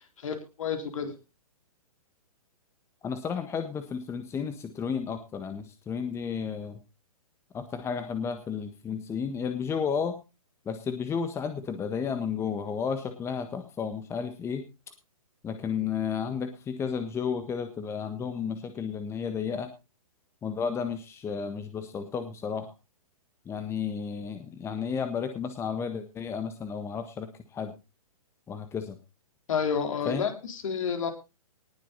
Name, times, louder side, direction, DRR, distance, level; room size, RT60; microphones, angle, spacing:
voice 1, 0.2-1.1 29.5-31.1, left 6 dB, 60° left, 5 dB, 3.9 m, -30 dB
voice 2, 3.0-6.8 7.5-10.2 10.6-14.6 15.4-19.7 20.4-22.7 23.5-27.7 28.5-29.0 30.0-30.3, left 6 dB, 15° left, 8 dB, 1.4 m, -32 dB
19.5 x 7.6 x 4.1 m, 0.28 s
figure-of-eight pair, 125°, 19 cm